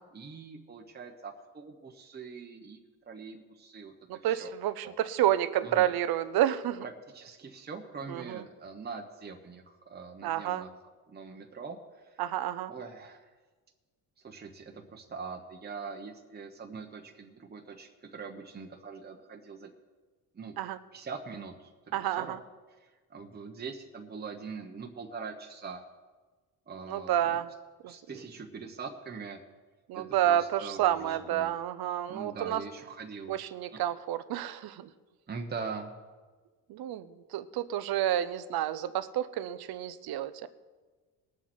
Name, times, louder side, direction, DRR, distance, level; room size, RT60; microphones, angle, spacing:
voice 1, 0.1-2.8 3.1-4.5 4.8-4.9 5.6-5.9 6.8-10.7 11.1-12.2 12.7-13.3 14.2-19.7 20.3-20.6 20.9-22.4 22.7-25.8 26.7-27.4 27.9-29.4 29.9-31.5 32.1-33.3 35.3-35.9, right 5 dB, 25° right, 2 dB, 1.1 m, -43 dB
voice 2, 4.1-6.8 8.1-8.4 10.2-10.6 12.2-12.7 20.6-20.8 21.9-22.4 26.9-27.5 27.8-27.9 29.9-32.6 33.3-34.9 36.7-40.5, right 12 dB, 75° right, 13 dB, 0.8 m, -30 dB
20.5 x 7.3 x 4.5 m, 1.4 s
cardioid pair, 115°, 37 cm